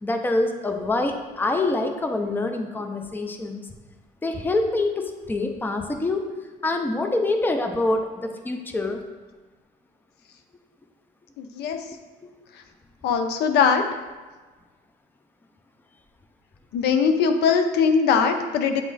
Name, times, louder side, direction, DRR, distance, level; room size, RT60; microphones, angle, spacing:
voice 1, 0.0-3.6 4.2-6.3 6.6-9.0, left 2 dB, 10° left, 5 dB, 0.5 m, -25 dB
voice 2, 11.4-11.8 13.0-13.8 16.7-18.8, left 6 dB, 75° left, 6 dB, 0.6 m, -21 dB
8.3 x 3.1 x 3.9 m, 1.3 s
cardioid pair, 110°, 17 cm